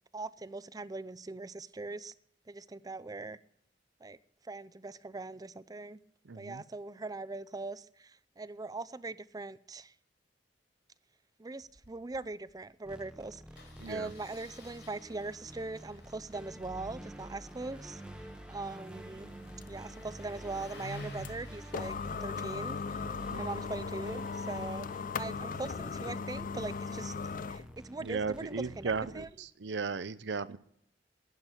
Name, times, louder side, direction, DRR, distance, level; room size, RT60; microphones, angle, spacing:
voice 1, 0.1-2.1 2.5-3.4 4.0-4.2 4.4-6.0 6.3-9.9 11.4-13.4 13.9-18.0 18.5-19.3 19.7-21.9 22.2-23.1 23.3-27.1 27.5-29.3, right 3 dB, 20° right, 0.5 m, -41 dB
voice 2, 6.2-6.6 13.8-14.1 23.3-23.6 28.0-30.6, right 4 dB, 75° right, 0.7 m, -36 dB
Engine starting, 11.6-11.9 12.1-12.2 12.5-12.7 13.6-24.6, left 1 dB, 75° left, 4.3 m, -52 dB
sound 1, 12.8-29.3, right 1 dB, 5° right, 1.0 m, -49 dB
sound 2, 18.7-27.7, left 5 dB, 50° left, 0.5 m, -38 dB
10.5 x 10.5 x 9.9 m
head